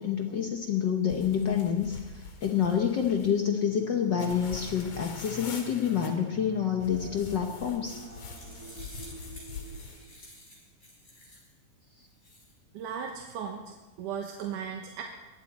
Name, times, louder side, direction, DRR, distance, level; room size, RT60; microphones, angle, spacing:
voice 1, 0.0-8.0, left 8 dB, 75° left, 3 dB, 1.0 m, -28 dB
sound 1, 1.1-3.4 4.2-6.1 6.8-10.0, left 4 dB, 60° left, 3.0 m, -44 dB
sound 2, 3.5-10.4, equal, 55° right, 1.0 m, -48 dB
sound 3, 7.7-11.5 12.0-12.5, left 1 dB, 20° left, 5.4 m, -51 dB
voice 2, 12.7-15.0, right 7 dB, 85° right, 2 dB, 2.7 m, -37 dB
21.5 x 15.5 x 4.3 m, 1.2 s
omnidirectional pair, 3.6 m